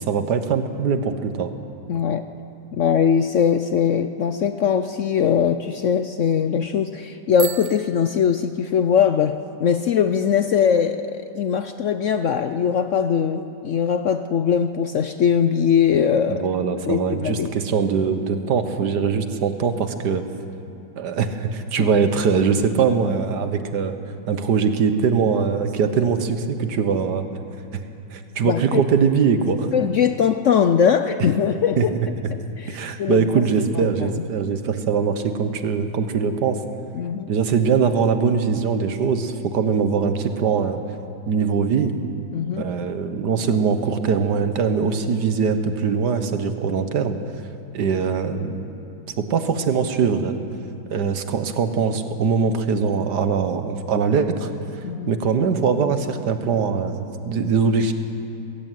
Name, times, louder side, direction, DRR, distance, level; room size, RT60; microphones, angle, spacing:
voice 1, 0.0-1.5 16.3-20.2 21.0-24.0 24.3-27.3 27.7-27.8 28.1-29.7 31.8-32.1 32.7-36.6 37.3-40.8 41.3-41.9 42.6-47.2 47.7-48.6 49.2-50.4 50.9-57.9, right 5 dB, 65° right, 9 dB, 1.7 m, -22 dB
voice 2, 1.9-2.2 2.7-16.5 16.9-17.5 21.8-21.9 28.4-28.8 29.7-31.9 32.6-33.3 33.7-33.9 34.1-34.2 36.9-37.3 42.3-42.7 54.8-55.2, left 7 dB, 70° left, 9 dB, 0.7 m, -21 dB
Bicycle bell, 7.3-9.1, right 12 dB, 80° right, 1.6 m, -35 dB
20.5 x 15.5 x 9.3 m, 2.7 s
omnidirectional pair, 2.0 m